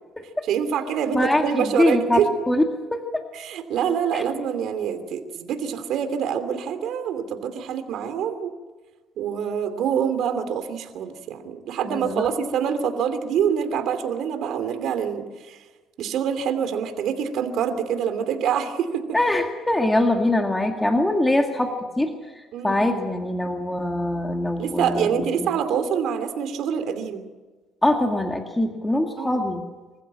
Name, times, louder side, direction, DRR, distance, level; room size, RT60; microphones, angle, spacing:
voice 1, 0.5-2.3 3.3-8.5 9.2-15.6 16.0-19.0 22.5-22.8 24.6-27.2 29.2-29.4, right 8 dB, 70° right, 8 dB, 2.8 m, -26 dB
voice 2, 1.1-2.2 2.5-2.6 2.9-3.1 4.1-4.2 11.8-12.3 19.1-22.1 22.6-25.5 27.8-29.6, left 1 dB, 10° left, 3 dB, 2.1 m, -23 dB
25.5 x 15.0 x 8.8 m, 1.3 s
cardioid pair, 100°, 0 cm